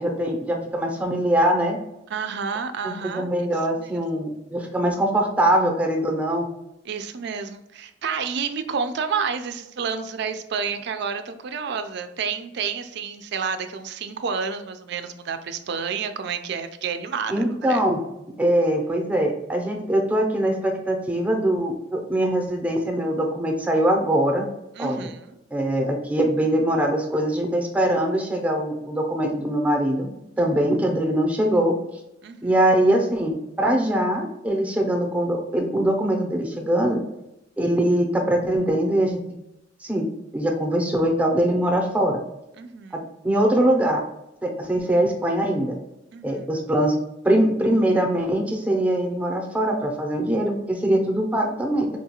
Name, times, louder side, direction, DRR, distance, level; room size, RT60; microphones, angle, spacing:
voice 1, 0.0-1.8 2.8-6.5 17.3-18.0 18.4-24.4 24.8-25.0 25.5-30.1 30.4-31.8 32.4-37.0 37.6-39.2 39.8-40.1 40.3-42.2 43.2-44.0 44.4-45.8 46.2-47.0 47.2-52.0, right 1 dB, 10° right, 1 dB, 0.6 m, -22 dB
voice 2, 2.1-3.3 3.8-4.0 6.8-17.8 24.8-25.4 30.4-30.6 32.2-32.6 42.6-43.1 46.1-46.5, right 6 dB, 65° right, 8 dB, 0.4 m, -30 dB
4.4 x 2.3 x 2.9 m, 0.86 s
head